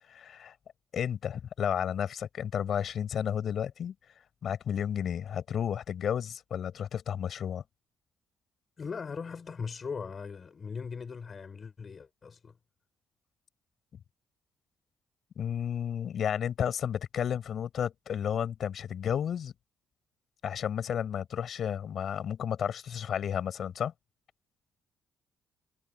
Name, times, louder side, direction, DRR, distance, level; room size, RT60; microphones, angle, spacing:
voice 1, 0.1-0.5 0.9-3.9 4.4-7.6 15.4-19.5 20.4-23.9, left 8 dB, 60° left, 6.4 m, -32 dB
voice 2, 8.8-12.5, left 5 dB, 40° left, 6.0 m, -39 dB
cardioid pair, 90°, 0 cm